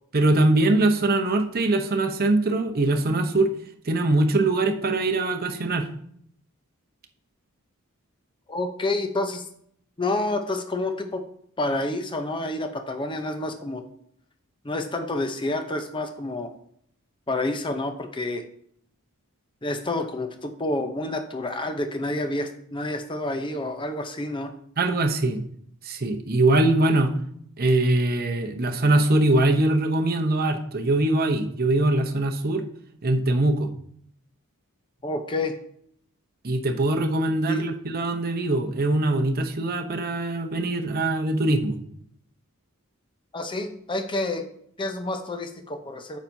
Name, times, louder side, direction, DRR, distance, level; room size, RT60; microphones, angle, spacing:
voice 1, 0.1-3.5 3.9-5.8 24.8-25.4 25.8-27.1 27.6-32.6 33.0-33.7 36.4-41.8, right 2 dB, 45° right, 5 dB, 0.8 m, -22 dB
voice 2, 8.5-9.4 10.0-11.2 11.6-13.8 14.6-16.5 17.3-18.4 19.6-24.5 35.0-35.5 37.5-37.7 43.3-44.4 44.8-46.2, left 2 dB, 20° left, 7 dB, 0.6 m, -29 dB
8.9 x 7.1 x 2.7 m, 0.66 s
head